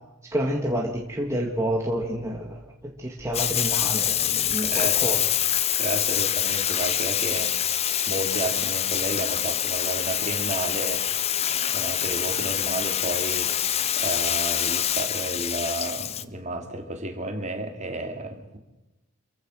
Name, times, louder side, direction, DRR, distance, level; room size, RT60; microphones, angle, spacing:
voice 1, 0.3-2.6 3.0-5.2, right 1 dB, 10° right, -1 dB, 1.8 m, -28 dB
Bathtub (filling or washing), 3.3-16.2, left 10 dB, 30° left, 0.6 m, -25 dB
voice 2, 4.6-5.2 5.7-7.7 8.1-11.1 11.7-13.5 14.0-18.6, right 1 dB, 30° right, 5 dB, 2.5 m, -32 dB
27.0 x 15.5 x 6.3 m, 1.0 s
head